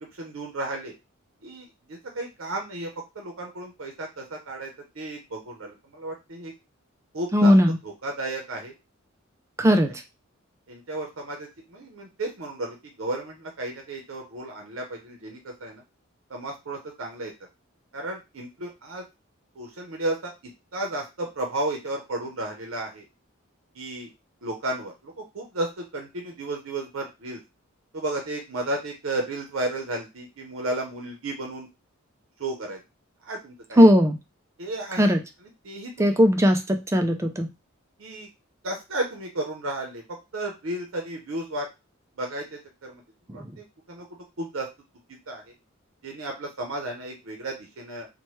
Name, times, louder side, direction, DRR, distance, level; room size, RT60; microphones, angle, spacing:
voice 1, 0.2-0.9 1.4-2.9 3.1-6.5 7.1-7.5 7.8-8.7 10.7-15.8 16.3-17.3 17.9-19.0 19.6-20.3 20.7-23.0 23.7-24.1 24.4-27.4 27.9-31.7 32.4-32.8 33.2-33.9 34.6-35.1 35.4-36.2 38.0-38.3 38.6-41.7 42.2-43.0 43.3-44.1 44.4-44.7 45.3-45.4 46.0-48.1, right 2 dB, 70° right, 2 dB, 0.7 m, -33 dB
voice 2, 7.3-7.7 9.6-9.9 33.8-34.2 35.0-35.2 36.0-37.5, equal, 15° right, 5 dB, 0.3 m, -17 dB
3.0 x 2.2 x 3.1 m, 0.24 s
head